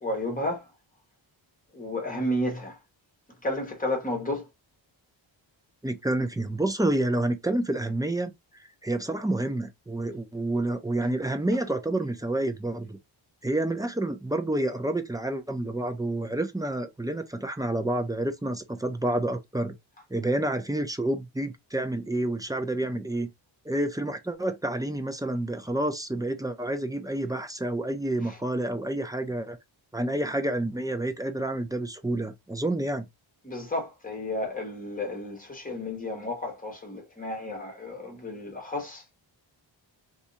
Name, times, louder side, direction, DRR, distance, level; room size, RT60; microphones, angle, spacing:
voice 1, 0.0-0.6 1.7-2.8 3.4-4.5 28.2-28.4 33.4-39.1, left 1 dB, 20° left, 1.2 m, -32 dB
voice 2, 5.8-8.3 8.8-13.0 13.4-19.7 20.1-23.3 23.7-29.6 29.9-33.0, right 1 dB, 10° right, 0.4 m, -29 dB
2.6 x 2.5 x 3.9 m
wide cardioid pair, 150°, 46 cm